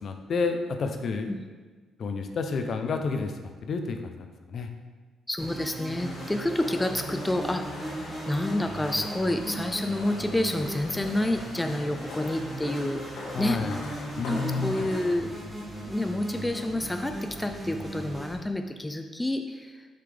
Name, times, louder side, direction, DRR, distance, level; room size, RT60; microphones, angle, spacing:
voice 1, 0.0-1.3 2.0-3.3 3.6-4.7 13.3-13.8 14.2-14.8, left 4 dB, 55° left, 6 dB, 0.7 m, -30 dB
voice 2, 5.3-13.6 14.3-15.3 15.9-19.9, left 1 dB, 10° left, 5 dB, 0.4 m, -29 dB
sound 1, 5.4-18.3, right 1 dB, 15° right, 1.8 m, -38 dB
sound 2, 5.9-15.2, left 2 dB, 90° left, 1.7 m, -42 dB
6.4 x 5.8 x 3.4 m, 1.4 s
cardioid pair, 90°, 0 cm